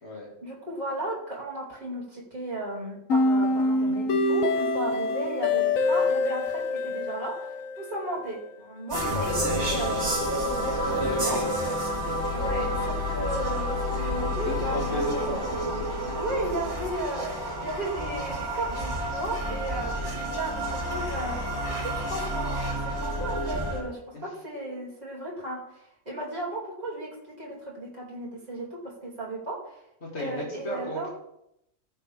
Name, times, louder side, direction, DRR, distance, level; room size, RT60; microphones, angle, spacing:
voice 1, 0.4-7.5 7.8-11.4 12.3-15.6 16.1-21.4 21.7-29.8 30.2-31.1, right 1 dB, 30° right, -5 dB, 2.7 m, -35 dB
sound 1, 3.1-8.1, left 2 dB, 85° left, 1.2 m, -25 dB
sound 2, 8.9-23.8, equal, 55° right, 2.4 m, -29 dB
voice 2, 11.0-11.8 12.0-12.2 14.2-15.4 24.1-24.2 30.0-31.1, left 2 dB, 55° left, -2 dB, 2.5 m, -35 dB
14.5 x 6.2 x 3.4 m, 0.79 s
omnidirectional pair, 1.4 m